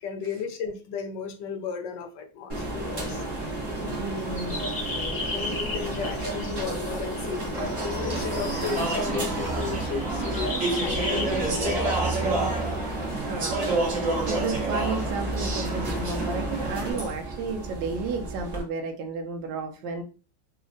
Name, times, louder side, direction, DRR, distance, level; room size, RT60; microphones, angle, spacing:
voice 1, 0.0-3.2 5.1-12.6, left 5 dB, 75° left, 4 dB, 1.2 m, -35 dB
sound 1, 2.5-18.6, right 2 dB, 35° right, 0.6 m, -32 dB
voice 2, 3.5-4.8 11.1-11.2 12.8-20.0, right 4 dB, 85° right, 4 dB, 1.3 m, -33 dB
sound 2, 3.9-13.2, left 2 dB, 30° left, 1.0 m, -36 dB
Speech / Chatter, 7.5-16.9, right 2 dB, 55° right, 1.2 m, -30 dB
3.6 x 2.1 x 2.5 m, 0.34 s
omnidirectional pair, 2.0 m